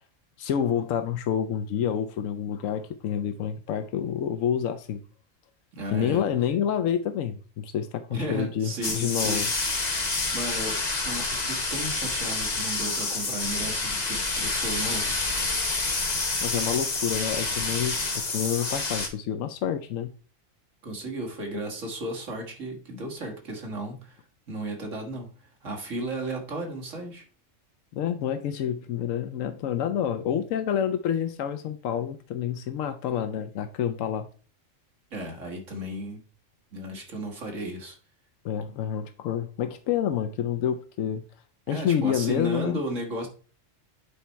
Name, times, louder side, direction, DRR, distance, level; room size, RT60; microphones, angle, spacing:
voice 1, 0.4-5.0 5.9-9.5 16.4-20.1 27.9-34.3 38.4-41.2 41.7-42.8, left 9 dB, 90° left, 1.0 m, -28 dB
voice 2, 5.7-6.2 8.1-9.5 10.3-15.2 20.8-24.2 24.5-27.2 35.1-36.2 36.7-38.0 41.7-43.3, right 1 dB, 75° right, 2.0 m, -34 dB
sound 1, 8.8-19.1, left 3 dB, 35° left, 1.2 m, -28 dB
8.4 x 4.1 x 4.5 m
omnidirectional pair, 1.3 m